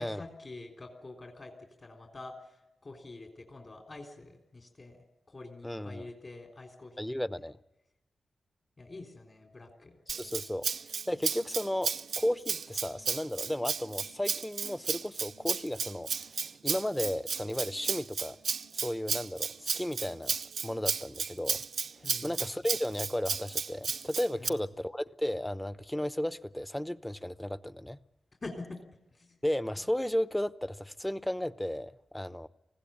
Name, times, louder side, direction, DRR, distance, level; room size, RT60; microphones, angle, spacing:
voice 1, 0.0-1.5 1.8-5.0 5.3-7.2 8.8-10.0 22.0-22.7 24.3-24.7 28.4-28.8 29.1-29.4, left 2 dB, 45° left, 3.4 m, -46 dB
voice 2, 5.6-6.0 7.0-7.6 10.2-10.7 11.1-18.4 18.7-20.3 20.6-21.6 22.0-28.0 29.4-32.5, left 1 dB, 10° left, 0.8 m, -34 dB
Rattle (instrument), 10.1-24.5, right 6 dB, 75° right, 0.7 m, -34 dB
20.0 x 15.5 x 8.7 m
supercardioid pair, 45°, 0 cm